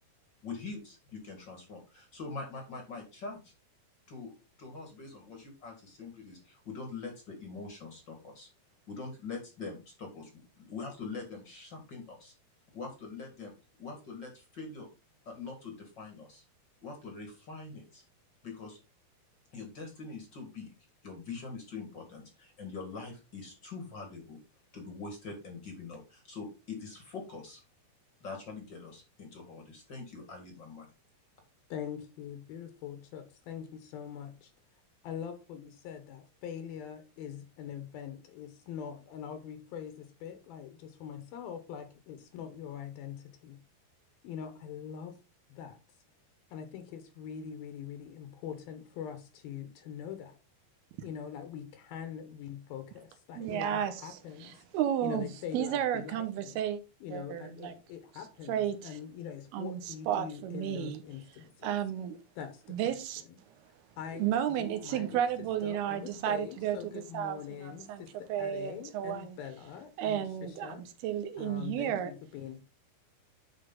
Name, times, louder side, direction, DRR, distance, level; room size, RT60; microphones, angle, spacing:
voice 1, 0.4-3.5 4.1-4.3 4.6-8.5 8.9-12.3 12.7-14.9 15.3-16.4 16.8-18.0 18.4-18.8 19.5-20.7 21.0-24.4 24.7-27.6 28.2-30.9, left 4 dB, 40° left, 1.8 m, -43 dB
voice 2, 31.7-34.5 35.0-43.6 44.2-45.2 45.5-45.8 46.5-50.4 51.0-54.6 55.0-56.6 57.0-61.8 62.4-62.9 63.3-63.4 64.0-65.2 65.6-70.8 71.4-72.6, left 8 dB, 75° left, 2.9 m, -43 dB
voice 3, 53.4-55.3 55.5-56.8 57.1-57.7 58.5-58.8 59.5-61.0 61.6-62.2 62.7-63.2 64.2-68.0 68.3-69.4 70.0-72.1, right 10 dB, 80° right, 3.0 m, -33 dB
10.5 x 4.9 x 3.8 m
omnidirectional pair, 4.5 m